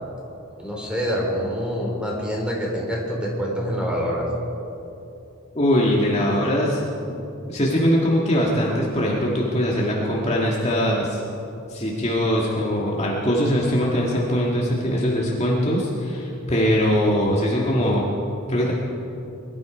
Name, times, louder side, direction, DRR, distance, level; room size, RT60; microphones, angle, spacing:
voice 1, 0.6-4.3, equal, 5° right, -2 dB, 3.4 m, -26 dB
voice 2, 5.5-6.8 7.1-7.2 7.5-11.2 11.7-18.1 18.5-18.7, equal, 30° left, -3 dB, 1.8 m, -21 dB
22.5 x 12.5 x 5.1 m, 2.8 s
head